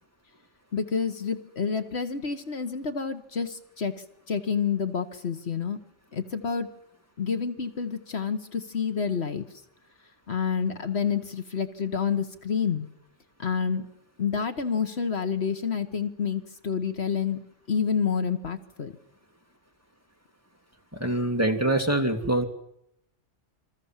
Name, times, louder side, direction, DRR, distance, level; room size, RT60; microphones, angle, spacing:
voice 1, 0.7-3.9 4.3-5.8 6.1-6.7 7.2-9.4 10.3-12.9 13.4-13.8 14.2-17.4 17.7-18.9, left 6 dB, 60° left, 8 dB, 1.7 m, -28 dB
voice 2, 21.0-22.4, right 1 dB, 10° right, 3 dB, 2.5 m, -24 dB
28.0 x 23.0 x 7.5 m, 0.78 s
omnidirectional pair, 1.2 m